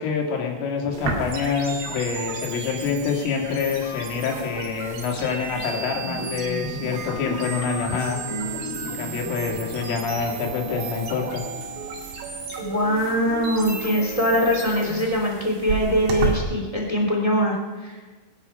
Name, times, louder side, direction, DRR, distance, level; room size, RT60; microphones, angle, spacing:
voice 1, 0.0-8.2 8.8-11.4, left 6 dB, 85° left, 1 dB, 4.8 m, -26 dB
sound 1, 0.9-16.4, right 6 dB, 80° right, 4.8 m, -36 dB
sound 2, 1.3-15.1, right 4 dB, 60° right, 4.4 m, -34 dB
voice 2, 8.3-9.1 12.6-17.9, equal, 15° left, -1 dB, 1.4 m, -23 dB
22.5 x 11.0 x 5.7 m, 1.3 s
omnidirectional pair, 5.6 m